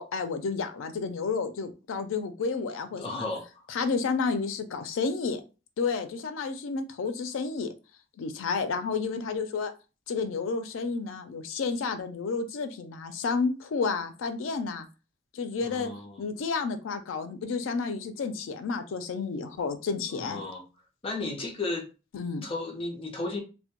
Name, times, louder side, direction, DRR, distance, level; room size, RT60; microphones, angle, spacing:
voice 1, 0.0-3.2 3.7-5.4 5.8-7.7 8.2-9.7 10.1-14.9 15.3-15.9 16.2-20.4 22.1-22.5, left 4 dB, 90° left, 0.4 m, -31 dB
voice 2, 2.9-3.5 15.6-16.2 20.1-20.6 21.0-21.9 22.4-23.4, left 2 dB, 30° left, 0.5 m, -34 dB
2.1 x 2.1 x 2.8 m
head